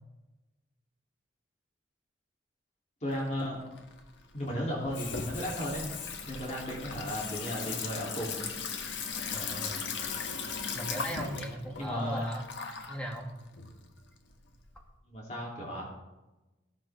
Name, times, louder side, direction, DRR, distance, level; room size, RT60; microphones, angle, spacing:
voice 1, 3.0-3.6 4.3-8.4 11.8-12.3 15.1-15.8, equal, 40° left, -4 dB, 3.5 m, -35 dB
Water tap faucet / Sink (filling or washing), 3.1-14.8, left 5 dB, 85° left, 1.5 m, -38 dB
voice 2, 9.3-9.9 10.7-12.5 12.9-13.3, equal, 5° left, -1 dB, 2.4 m, -38 dB
16.5 x 13.0 x 3.8 m, 1.0 s
head